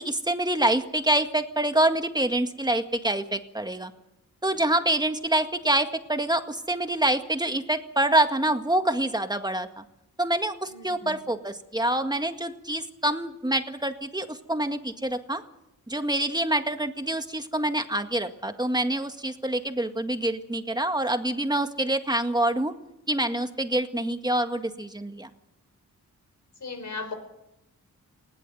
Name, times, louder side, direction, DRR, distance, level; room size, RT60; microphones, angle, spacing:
voice 1, 0.0-3.9 4.4-9.8 10.2-15.4 15.9-22.7 23.1-25.3, right 1 dB, 10° right, 7 dB, 1.9 m, -26 dB
voice 2, 10.7-11.2 26.6-27.1, left 4 dB, 60° left, 7 dB, 4.9 m, -37 dB
20.0 x 16.5 x 9.3 m, 0.87 s
cardioid pair, 65°, 33 cm